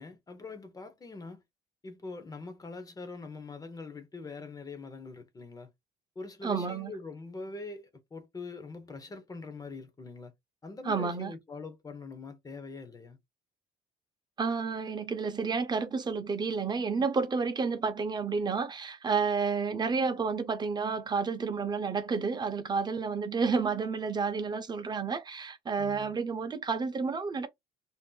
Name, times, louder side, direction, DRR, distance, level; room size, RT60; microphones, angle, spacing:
voice 1, 0.0-1.4 1.8-5.7 6.2-10.3 10.6-13.2 25.8-26.2, left 3 dB, 20° left, 0.8 m, -43 dB
voice 2, 6.4-6.9 10.9-11.3 14.4-27.5, right 5 dB, 25° right, 0.8 m, -30 dB
2.7 x 2.0 x 3.7 m
cardioid pair, 110°, 17 cm